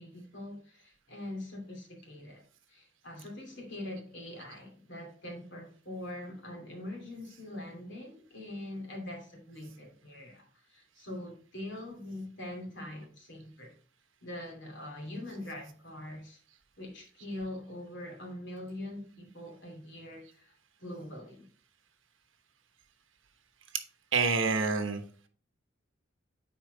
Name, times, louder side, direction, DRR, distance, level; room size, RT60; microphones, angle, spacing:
voice 1, 0.0-2.4 2.7-13.7 14.2-16.4 16.8-20.5 20.8-21.4, left 1 dB, 65° left, 2.6 m, -43 dB
voice 2, 24.1-25.0, right 4 dB, 80° right, 1.1 m, -27 dB
8.9 x 4.5 x 3.8 m
head